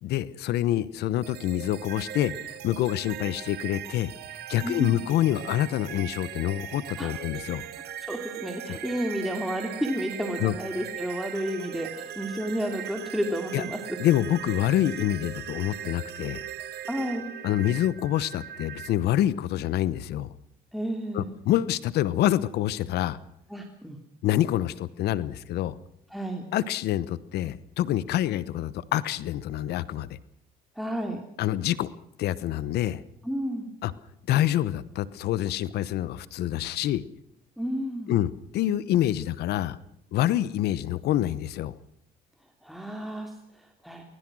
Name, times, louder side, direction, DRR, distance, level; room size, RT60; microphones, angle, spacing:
voice 1, 0.0-7.6 8.7-8.8 10.4-10.5 13.5-13.6 14.0-16.4 17.4-20.3 21.1-23.2 24.2-25.7 26.5-30.1 31.4-31.9 32.2-33.0 33.8-33.9 34.3-37.0 38.1-39.8 40.1-41.7, left 13 dB, 75° left, 18 dB, 1.0 m, -26 dB
sound 1, 1.2-18.9, right 10 dB, 75° right, 2.4 m, -39 dB
voice 2, 4.6-5.0 7.0-7.1 8.0-13.8 16.9-17.2 20.7-21.3 23.5-24.0 26.1-26.4 30.8-31.2 33.2-33.7 37.6-38.1 42.6-44.0, equal, ahead, 3 dB, 2.8 m, -31 dB
24.0 x 20.0 x 6.3 m, 0.74 s
cardioid pair, 110°, 17 cm